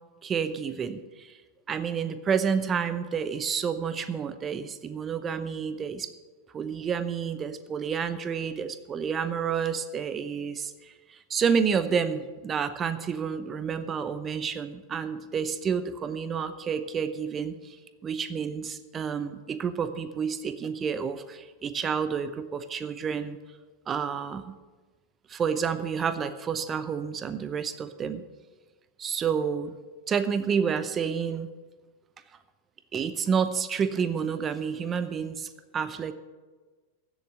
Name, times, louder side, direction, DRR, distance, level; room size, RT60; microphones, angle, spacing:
voice 1, 0.2-1.4 1.7-6.1 6.5-17.8 18.0-23.4 23.9-24.5 25.3-28.2 29.0-29.7 30.1-31.5 32.9-36.1, right 6 dB, 25° right, 12 dB, 0.8 m, -29 dB
15.5 x 7.2 x 6.5 m, 1.3 s
figure-of-eight pair, 90°, 0 cm